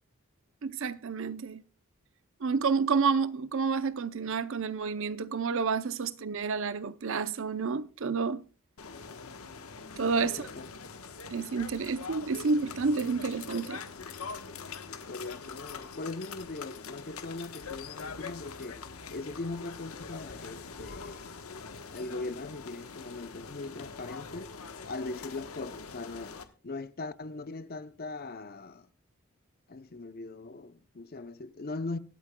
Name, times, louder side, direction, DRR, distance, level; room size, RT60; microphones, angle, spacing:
voice 1, 0.6-1.6 2.4-8.4 10.0-10.5 11.3-13.8, right 5 dB, 65° right, 0.6 m, -29 dB
sound 1, 8.8-26.4, left 5 dB, 90° left, 1.2 m, -43 dB
voice 2, 10.2-10.7 14.7-18.8 19.1-21.3 21.9-24.5 24.9-28.9 29.7-32.0, left 3 dB, 45° left, 0.7 m, -40 dB
25.0 x 8.7 x 2.2 m
head